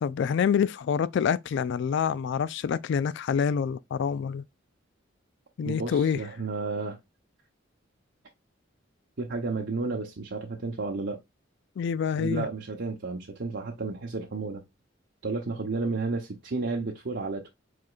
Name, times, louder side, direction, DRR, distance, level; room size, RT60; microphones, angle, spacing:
voice 1, 0.0-4.4 5.6-6.2 11.8-12.5, left 7 dB, 65° left, 0.3 m, -26 dB
voice 2, 5.6-7.0 9.2-11.2 12.2-14.6 15.2-17.5, right 3 dB, 60° right, 0.8 m, -32 dB
4.9 x 4.3 x 2.4 m
head